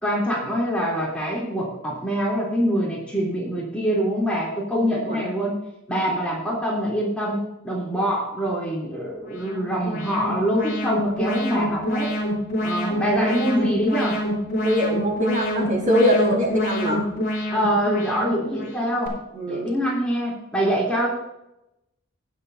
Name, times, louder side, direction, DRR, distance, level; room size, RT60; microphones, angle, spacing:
voice 1, 0.0-5.6 5.9-12.1 12.6-14.2 17.5-19.1 19.5-21.1, equal, 5° left, -5 dB, 3.3 m, -24 dB
Alarm, 9.2-19.1, equal, 50° left, 4.8 m, -27 dB
voice 2, 14.6-17.0 19.3-19.7, equal, 40° right, -1 dB, 4.8 m, -22 dB
20.5 x 7.6 x 2.7 m, 0.86 s
head